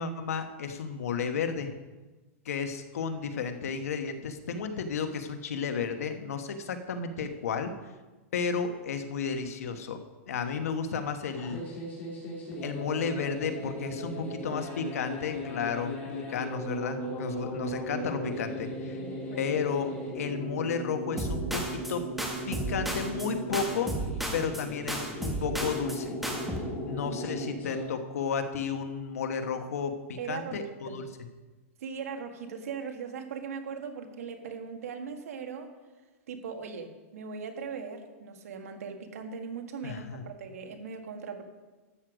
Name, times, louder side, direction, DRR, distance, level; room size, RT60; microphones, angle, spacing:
voice 1, 0.0-1.7 2.4-7.7 8.3-10.0 10.3-11.6 12.6-19.0 19.3-22.0 22.5-23.9 24.3-26.1 26.9-31.1 39.8-40.2, left 6 dB, 90° left, 7 dB, 1.3 m, -33 dB
sound 1, 11.3-27.8, equal, 20° left, 3.6 m, -37 dB
voice 2, 18.9-19.5 27.0-27.7 30.2-30.6 30.8-31.0 31.8-35.7 36.3-41.4, right 6 dB, 85° right, 5 dB, 1.7 m, -39 dB
sound 2, 21.2-21.9 22.2-23.3 23.5-24.6 24.9-26.0 26.2-26.6, right 1 dB, ahead, 1.3 m, -33 dB
13.0 x 7.8 x 5.1 m, 1.2 s
supercardioid pair, 165°, 8 cm